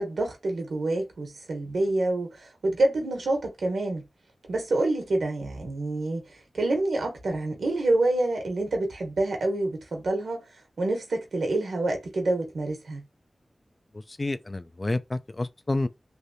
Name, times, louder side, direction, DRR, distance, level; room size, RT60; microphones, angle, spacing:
voice 1, 0.0-4.0 4.5-6.2 6.5-10.4 10.8-13.0, right 2 dB, 90° right, 1.0 m, -27 dB
voice 2, 13.9-15.9, left 2 dB, 40° left, 0.4 m, -29 dB
3.2 x 2.7 x 2.7 m
cardioid pair, 50°, 0 cm